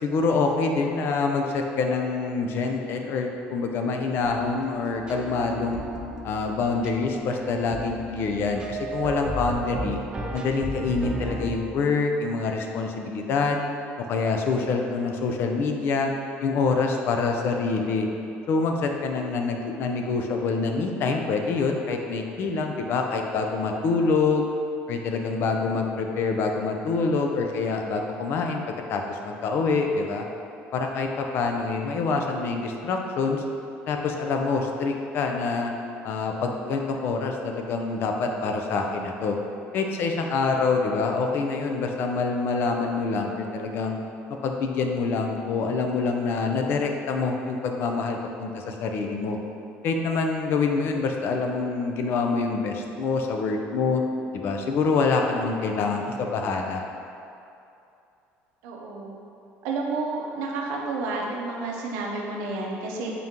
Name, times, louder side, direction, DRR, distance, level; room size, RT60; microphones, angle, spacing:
voice 1, 0.0-5.8 6.2-10.0 10.3-13.6 14.1-16.1 16.4-18.1 18.5-24.5 24.9-28.6 28.9-30.2 30.7-33.4 33.9-35.7 36.0-39.4 39.7-44.0 44.4-49.4 49.8-54.0 54.3-56.8, left 4 dB, 55° left, 3 dB, 0.4 m, -26 dB
sound 1, 4.2-11.6, right 2 dB, 20° right, 0.3 m, -35 dB
voice 2, 58.6-59.1 59.6-63.1, right 3 dB, 90° right, -1 dB, 0.6 m, -30 dB
3.8 x 2.8 x 3.5 m, 2.6 s
cardioid pair, 135°, 5 cm